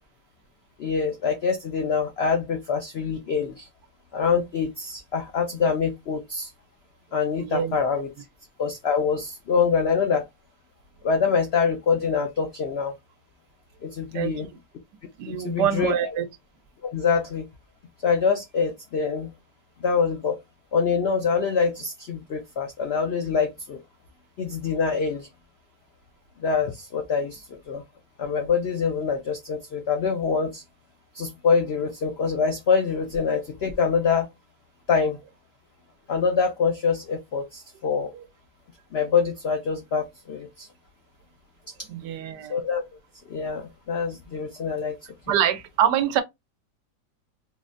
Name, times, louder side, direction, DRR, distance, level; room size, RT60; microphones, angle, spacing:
voice 1, 0.8-3.7 4.1-6.5 7.1-8.1 8.6-10.2 11.0-12.9 13.8-14.5 15.3-16.1 16.8-17.5 18.0-19.3 19.8-20.4 20.7-23.8 24.4-25.3 26.4-27.8 28.2-30.6 31.1-34.3 34.9-35.2 36.1-38.1 38.9-40.7 42.5-42.8 43.3-45.0, left 5 dB, 80° left, 0.5 m, -25 dB
voice 2, 7.4-7.8 14.1-14.3 15.2-16.2 38.1-38.2 41.9-42.6 45.3-46.2, right 10 dB, 85° right, 1.2 m, -25 dB
3.8 x 2.0 x 2.5 m
omnidirectional pair, 1.8 m